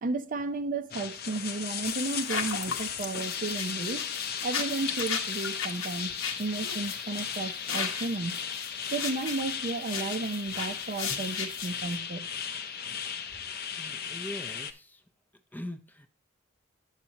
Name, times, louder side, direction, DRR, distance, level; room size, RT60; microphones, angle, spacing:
voice 1, 0.0-4.1 4.4-6.1 6.4-8.4 8.9-12.3, right 3 dB, 45° right, 0.6 m, -33 dB
sound 1, 0.9-14.7, left 7 dB, 50° left, 0.6 m, -36 dB
sound 2, 1.8-12.0, left 6 dB, 85° left, 1.1 m, -36 dB
voice 2, 13.8-15.0 15.5-16.1, left 1 dB, 10° left, 0.6 m, -41 dB
9.0 x 7.4 x 2.8 m
head